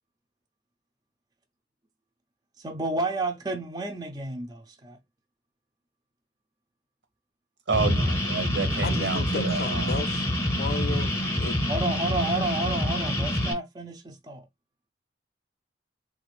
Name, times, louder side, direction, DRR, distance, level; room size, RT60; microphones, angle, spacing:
voice 1, 2.6-5.0 11.7-14.4, right 2 dB, 20° right, 0.4 m, -31 dB
sound 1, 7.7-13.5, left 1 dB, 15° left, 0.7 m, -26 dB
voice 2, 7.7-10.1, right 4 dB, 85° right, 0.8 m, -29 dB
voice 3, 8.8-10.2 10.5-11.6, left 4 dB, 55° left, 0.4 m, -34 dB
3.3 x 2.4 x 3.1 m
head